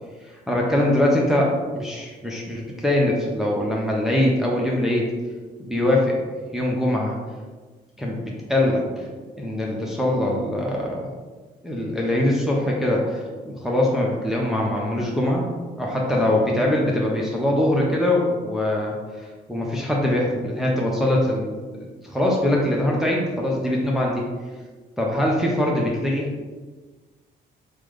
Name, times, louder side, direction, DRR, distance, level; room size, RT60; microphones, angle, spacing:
voice 1, 0.2-5.1 5.6-6.2 6.5-7.2 8.0-8.2 8.5-9.1 9.4-11.1 11.6-15.4 15.8-21.5 22.0-24.2 25.0-26.3, left 1 dB, ahead, -3 dB, 0.6 m, -22 dB
3.3 x 2.0 x 3.4 m, 1.4 s
supercardioid pair, 60°, 20 cm